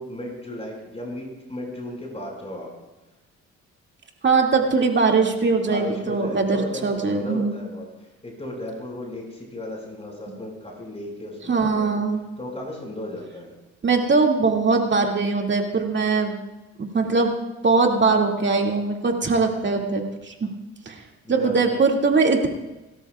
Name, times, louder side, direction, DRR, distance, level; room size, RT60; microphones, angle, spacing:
voice 1, 0.0-2.7 5.7-11.9 12.4-13.5 21.2-21.7, left 1 dB, 20° left, -2 dB, 5.9 m, -35 dB
voice 2, 4.2-7.5 11.5-12.2 13.8-16.4 16.8-17.3 17.6-20.5 20.9-21.0 21.3-22.5, right 4 dB, 40° right, 1 dB, 2.3 m, -21 dB
29.5 x 13.0 x 2.4 m, 1.1 s
cardioid pair, 90°, 30 cm